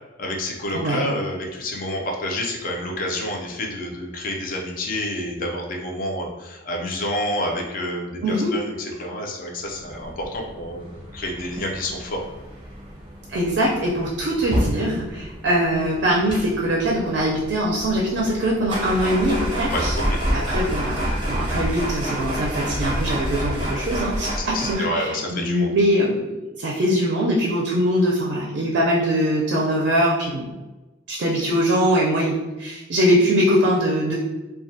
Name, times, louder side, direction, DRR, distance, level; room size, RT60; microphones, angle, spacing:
voice 1, 0.2-12.2 19.7-19.8 20.1-20.2 24.3-25.7, left 1 dB, 50° left, 0 dB, 0.4 m, -28 dB
voice 2, 0.7-1.0 8.2-8.5 13.3-19.9 20.3-30.5 31.1-34.1, equal, 65° right, -3 dB, 0.4 m, -22 dB
sound 1, 9.8-24.7, equal, 25° right, 0.6 m, -29 dB
2.2 x 2.1 x 2.6 m, 1.1 s
head